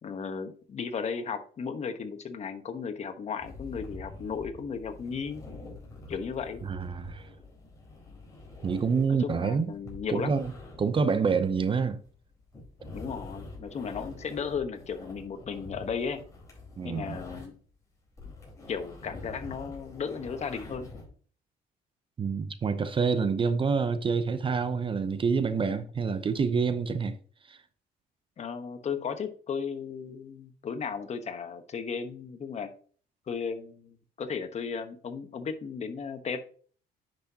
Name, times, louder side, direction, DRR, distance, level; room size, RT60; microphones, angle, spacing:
voice 1, 0.0-5.4 6.1-6.6 9.1-10.3 12.9-16.2 16.8-17.5 18.3-18.4 18.7-20.9 28.4-32.7 33.3-36.5, left 6 dB, 40° left, 1.2 m, -35 dB
sound 1, 3.4-17.7 18.0-21.1, left 2 dB, 20° left, 4.2 m, -46 dB
voice 2, 6.6-7.3 8.6-9.7 10.1-10.5 10.8-12.0 16.8-17.2 22.2-27.2 27.5-27.6, right 5 dB, 30° right, 0.7 m, -27 dB
10.5 x 6.1 x 2.8 m
cardioid pair, 110°, 17 cm